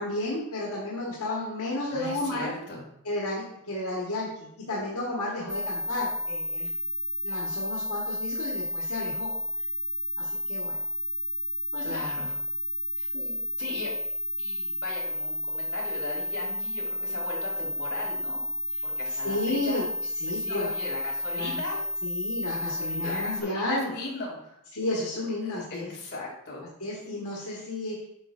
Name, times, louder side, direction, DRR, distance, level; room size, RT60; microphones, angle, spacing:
voice 1, 0.0-2.5 3.0-6.7 7.2-9.3 10.2-10.8 11.7-12.0 13.1-13.4 18.7-18.8 19.1-19.9 20.2-20.7 21.3-23.9 24.7-25.9 26.8-28.0, left 2 dB, 85° left, -4 dB, 1.3 m, -32 dB
voice 2, 1.8-2.8 11.8-12.3 13.0-13.1 13.6-13.9 14.4-18.4 18.8-19.9 20.2-21.8 23.0-24.6 25.4-26.6, left 2 dB, 55° left, -4 dB, 2.5 m, -38 dB
sound 1, 5.5-23.4, equal, 5° right, 0.3 m, -32 dB
7.8 x 5.5 x 2.5 m, 0.77 s
head